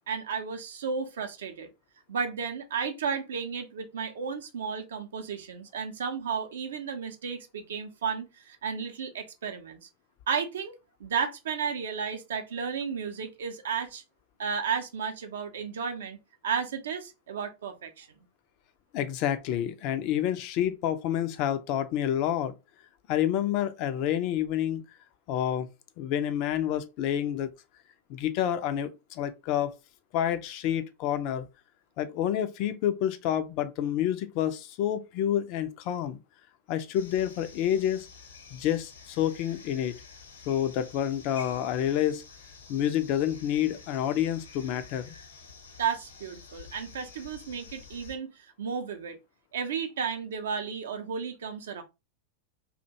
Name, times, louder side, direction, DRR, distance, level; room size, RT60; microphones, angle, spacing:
voice 1, 0.1-1.7 2.1-9.9 10.3-10.7 11.0-14.0 14.4-16.2 16.4-18.1 45.8-49.2 49.5-51.8, right 6 dB, 60° right, 0.5 m, -33 dB
voice 2, 18.9-22.5 23.1-24.8 25.3-25.7 26.0-27.5 28.1-29.7 30.1-31.4 32.0-36.2 36.7-38.1 38.5-40.0 40.5-42.2 42.7-45.1, left 10 dB, 45° left, 0.3 m, -28 dB
sound 1, 36.9-48.2, left 5 dB, 65° left, 0.7 m, -49 dB
2.4 x 2.1 x 2.7 m
figure-of-eight pair, 90°, 0 cm